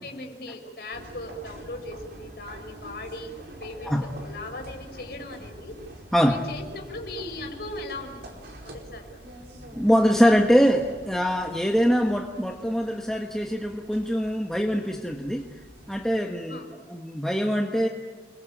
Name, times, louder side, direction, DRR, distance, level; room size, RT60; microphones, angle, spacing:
voice 1, 0.0-5.8 6.2-8.4 8.6-9.1 16.5-16.7, left 1 dB, 60° left, 3 dB, 5.4 m, -38 dB
sound 1, 0.9-16.2, equal, 80° right, 4.9 m, -46 dB
voice 2, 9.7-15.5 15.9-17.9, equal, 5° left, 1 dB, 1.4 m, -23 dB
29.0 x 23.0 x 8.8 m, 1.4 s
head